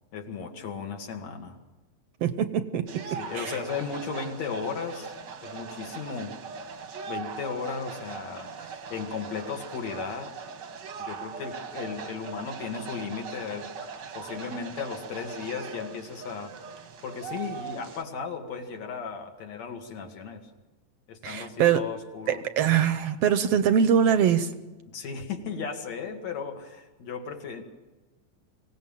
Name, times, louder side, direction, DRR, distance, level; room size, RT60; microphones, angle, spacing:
voice 1, 0.1-1.6 3.1-5.1 5.4-6.3 7.1-10.3 11.0-13.9 14.1-16.5 17.0-20.5 21.1-22.5 24.9-27.6, left 5 dB, 65° left, 3 dB, 3.2 m, -35 dB
voice 2, 2.2-3.0 21.2-21.8 22.3-24.5, right 8 dB, 70° right, 11 dB, 1.6 m, -23 dB
sound 1, 2.9-18.0, right 6 dB, 50° right, 1.3 m, -40 dB
25.0 x 17.5 x 7.4 m, 1.2 s
omnidirectional pair, 3.4 m